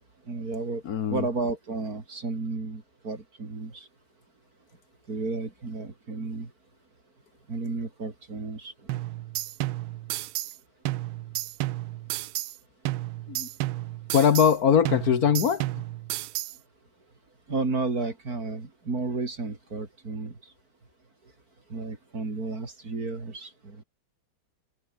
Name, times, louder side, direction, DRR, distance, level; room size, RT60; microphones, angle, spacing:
voice 1, 0.3-0.8 1.1-3.9 5.1-6.5 7.5-9.0 17.5-20.4 21.7-23.8, right 3 dB, 45° right, 3.9 m, -32 dB
voice 2, 0.8-1.2 13.3-13.5 14.1-15.7, left 7 dB, 55° left, 1.4 m, -21 dB
sound 1, 8.9-10.6 10.9-12.6 12.9-14.6 14.9-16.6, right 17 dB, 85° right, 1.4 m, -32 dB
omnidirectional pair, 2.2 m